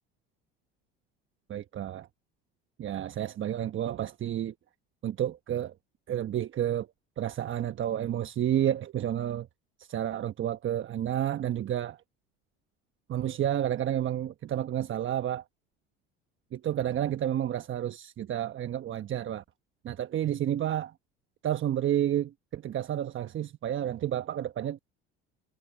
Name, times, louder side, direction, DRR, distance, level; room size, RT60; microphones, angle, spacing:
voice 1, 1.5-2.1 2.8-4.5 5.0-5.7 6.1-6.9 7.2-9.5 9.8-12.0 13.1-15.4 16.5-19.4 19.8-20.9 21.4-24.8, right 11 dB, 45° right, 1.2 m, -30 dB
hypercardioid pair, 80°, 29 cm